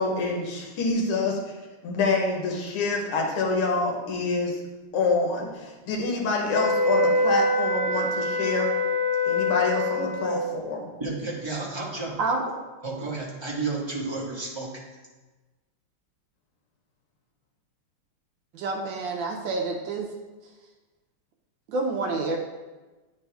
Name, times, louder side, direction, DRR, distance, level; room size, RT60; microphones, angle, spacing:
voice 1, 0.0-1.4 1.8-4.6 4.9-8.7 9.3-10.9, left 3 dB, 80° left, -1 dB, 2.0 m, -26 dB
sound 1, 6.5-10.4, left 2 dB, 40° left, 1.5 m, -24 dB
voice 2, 11.0-12.1 12.8-14.7, right 3 dB, 15° right, -6 dB, 0.9 m, -31 dB
voice 3, 18.5-20.1 21.7-22.4, right 3 dB, 70° right, 2 dB, 1.2 m, -28 dB
9.3 x 4.1 x 3.4 m, 1.2 s
omnidirectional pair, 2.4 m